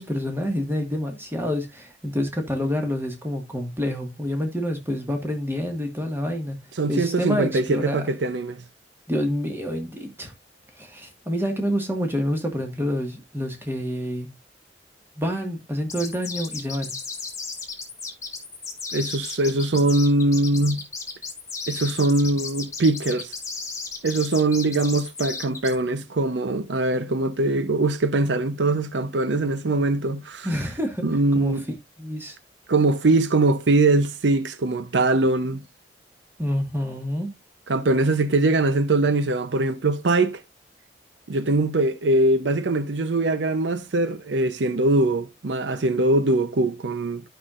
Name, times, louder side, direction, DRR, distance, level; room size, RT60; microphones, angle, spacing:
voice 1, 0.0-6.6 6.9-8.1 9.1-10.3 10.8-14.3 15.2-17.0 30.4-31.0 31.3-31.6 32.0-32.4 36.4-37.3, equal, 15° right, 1.6 m, -27 dB
voice 2, 6.8-8.6 18.9-20.8 21.7-23.3 24.0-30.5 31.0-31.7 32.7-35.6 37.7-40.4 41.3-47.2, right 2 dB, 80° right, 0.7 m, -22 dB
sound 1, 15.9-25.7, left 4 dB, 20° left, 1.7 m, -34 dB
12.0 x 5.7 x 2.4 m
head